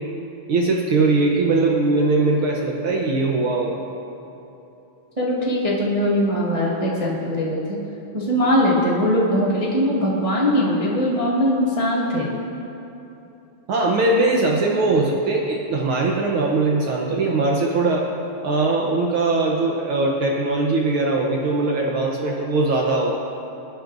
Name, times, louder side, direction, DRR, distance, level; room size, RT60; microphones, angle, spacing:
voice 1, 0.5-3.8 13.7-18.1 18.4-23.2, right 3 dB, 80° right, -1 dB, 1.2 m, -20 dB
voice 2, 5.2-7.8 8.1-12.3, equal, 25° right, -6 dB, 0.7 m, -21 dB
24.5 x 9.3 x 2.6 m, 3.0 s
omnidirectional pair, 3.4 m